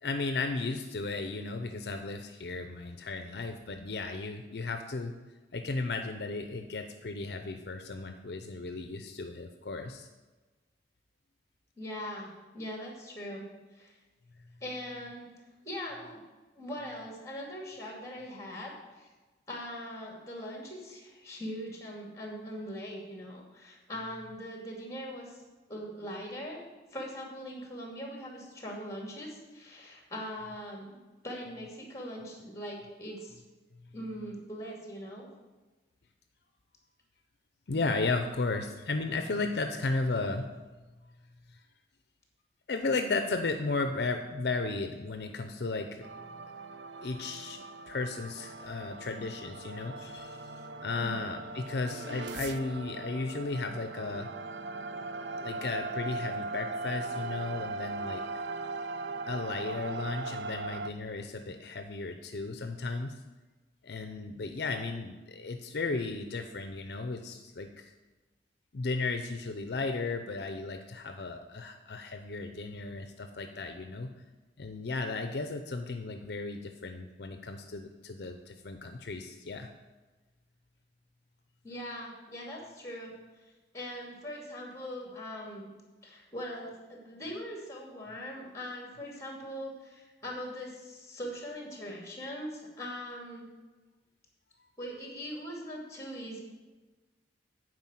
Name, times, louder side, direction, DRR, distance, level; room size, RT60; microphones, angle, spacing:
voice 1, 0.0-5.1 5.5-10.1 37.7-40.5 42.7-46.1 47.0-50.5 50.8-54.3 55.4-58.2 59.3-63.1 63.8-67.9 68.7-74.1 74.6-79.7, left 3 dB, 65° left, 6 dB, 0.6 m, -35 dB
voice 2, 11.8-13.4 13.7-14.0 14.6-15.3 15.6-16.2 16.6-19.1 19.5-25.4 25.7-26.6 26.9-31.0 31.2-33.4 33.9-35.3 50.9-51.2 81.6-83.1 83.7-85.7 86.0-93.5 94.8-96.4, equal, 15° left, -1 dB, 2.4 m, -41 dB
sound 1, 46.0-60.9, right 3 dB, 85° right, 0.5 m, -39 dB
9.5 x 4.9 x 7.5 m, 1.2 s
head